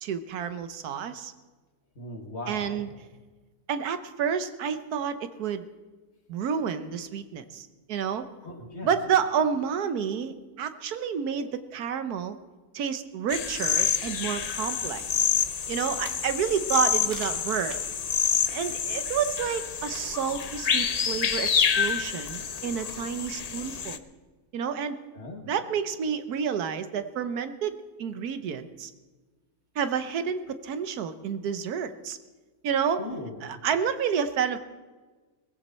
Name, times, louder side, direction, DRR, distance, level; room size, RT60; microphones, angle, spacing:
voice 1, 0.0-1.3 2.5-2.9 3.7-5.6 6.3-8.3 8.8-12.4 12.7-15.3 15.7-17.8 18.5-24.0 24.5-25.0 25.5-28.9 29.7-32.2 32.6-33.0 33.4-34.6, right 7 dB, 85° right, 11 dB, 1.4 m, -29 dB
voice 2, 2.0-2.9 8.4-8.9 25.1-25.5 33.0-33.5, left 1 dB, 45° left, 2 dB, 2.3 m, -39 dB
sound 1, 13.3-24.0, left 6 dB, 70° left, 0.3 m, -28 dB
sound 2, 16.8-22.3, right 4 dB, 70° right, 1.9 m, -51 dB
20.0 x 15.5 x 4.3 m, 1.3 s
omnidirectional pair, 1.6 m